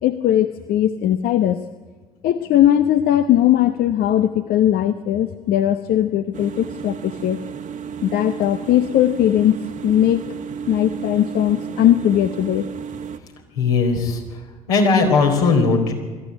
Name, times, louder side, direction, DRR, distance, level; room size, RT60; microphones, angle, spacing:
voice 1, 0.0-1.6 2.2-7.4 8.0-9.6 9.8-10.3 10.7-12.7, left 11 dB, 55° left, 10 dB, 1.0 m, -18 dB
sound 1, 6.3-13.2, right 7 dB, 45° right, 1.5 m, -33 dB
voice 2, 13.5-14.2 14.7-15.9, left 4 dB, 75° left, 1 dB, 4.3 m, -17 dB
22.5 x 14.0 x 9.8 m, 1.3 s
figure-of-eight pair, 55°, 19 cm